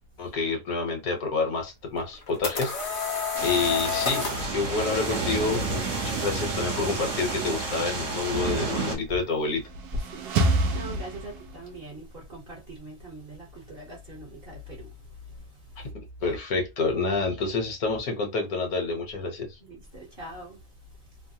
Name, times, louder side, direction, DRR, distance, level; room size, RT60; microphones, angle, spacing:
voice 1, 0.2-2.7 3.1-9.6 16.2-19.5, left 4 dB, 70° left, 1.4 m, -28 dB
sound 1, 2.0-4.5, left 5 dB, 40° left, 0.9 m, -29 dB
sound 2, 3.3-9.0, right 3 dB, 55° right, 1.3 m, -30 dB
sound 3, 9.4-11.8, right 2 dB, 80° right, 1.1 m, -27 dB
voice 2, 9.9-14.9 19.6-20.6, equal, 40° right, 1.2 m, -40 dB
3.2 x 2.2 x 2.7 m
omnidirectional pair, 1.6 m